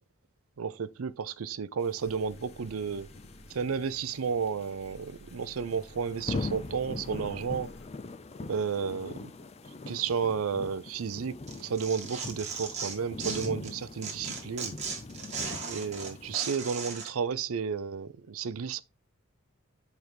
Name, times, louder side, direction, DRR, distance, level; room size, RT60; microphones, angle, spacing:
voice 1, 0.6-3.1 3.5-7.7 8.5-9.3 9.9-14.7 15.6-18.8, right 6 dB, 80° right, 0.5 m, -32 dB
sound 1, 1.8-16.4, left 3 dB, 30° left, 0.4 m, -42 dB
sound 2, 2.0-7.9, right 1 dB, 75° left, 2.3 m, -54 dB
Tearing, 11.5-13.7 14.0-17.1, right 5 dB, 30° right, 1.3 m, -37 dB
7.9 x 4.6 x 3.4 m
head